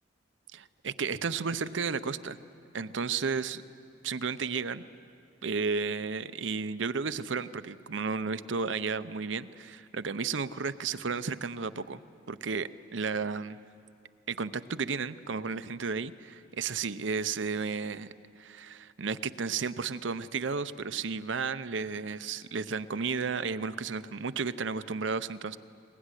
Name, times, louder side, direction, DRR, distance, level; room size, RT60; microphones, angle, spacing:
voice 1, 0.5-2.4 2.7-3.6 4.0-4.8 5.4-12.0 12.3-13.6 14.3-18.1 18.4-25.6, right 5 dB, 80° right, 13 dB, 0.7 m, -33 dB
23.0 x 21.0 x 9.9 m, 2.5 s
head